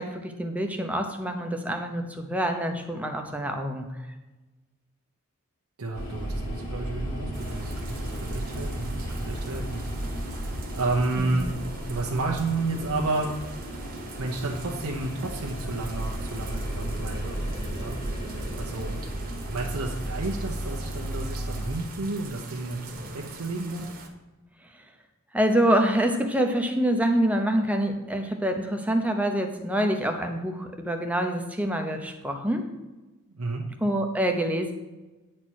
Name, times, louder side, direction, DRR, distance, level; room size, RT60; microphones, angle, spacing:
voice 1, 0.0-3.9 11.2-11.4 25.3-32.7 33.8-34.7, right 1 dB, 5° right, 4 dB, 0.8 m, -26 dB
voice 2, 5.8-9.8 10.2-10.3 10.7-11.5 11.9-13.3 14.2-17.4 17.8-18.0 18.6-19.0 19.5-23.9 33.4-33.7, right 2 dB, 80° right, 0 dB, 0.9 m, -31 dB
sound 1, 5.9-21.8, equal, 40° left, 2.4 m, -34 dB
sound 2, 7.3-24.1, right 3 dB, 40° right, 1.2 m, -44 dB
9.6 x 4.4 x 6.3 m, 1.2 s
head